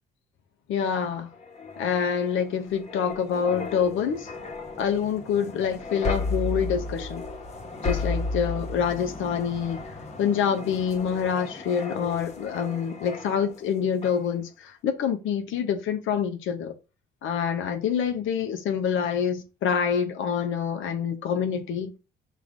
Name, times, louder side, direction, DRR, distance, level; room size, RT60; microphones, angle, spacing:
voice 1, 0.7-1.3 1.8-4.3 4.8-7.2 7.8-9.8 10.2-16.7 17.2-21.9, left 7 dB, 80° left, 0.6 m, -26 dB
sound 1, 1.3-13.7 14.0-14.3, left 3 dB, 35° left, 1.0 m, -34 dB
4.9 x 2.4 x 3.6 m
cardioid pair, 90°, 20 cm